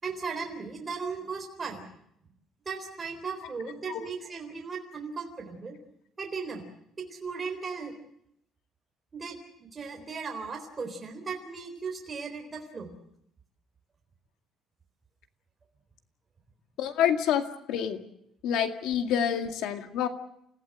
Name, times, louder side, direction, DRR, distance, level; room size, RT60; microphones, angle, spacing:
voice 1, 0.0-1.8 2.7-5.8 6.2-6.6 7.1-7.9 9.1-13.0, right 5 dB, 20° right, 2 dB, 3.9 m, -37 dB
voice 2, 16.8-18.0 18.4-20.1, left 9 dB, 80° left, 6 dB, 2.1 m, -27 dB
29.5 x 16.5 x 7.9 m, 0.76 s
cardioid pair, 160°, 0 cm